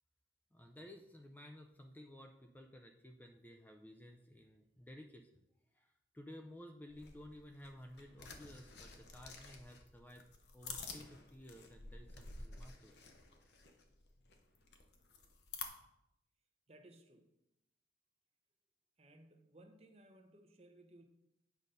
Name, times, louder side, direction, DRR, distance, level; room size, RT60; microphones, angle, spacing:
voice 1, 0.5-5.4 5.7-10.2 10.5-13.0, left 1 dB, 10° left, 4 dB, 0.4 m, -55 dB
sound 1, 6.9-15.7, left 4 dB, 70° left, 0.9 m, -51 dB
voice 2, 16.7-17.3 19.0-21.0, right 1 dB, 35° right, 5 dB, 0.8 m, -61 dB
8.2 x 3.9 x 5.4 m, 0.84 s
head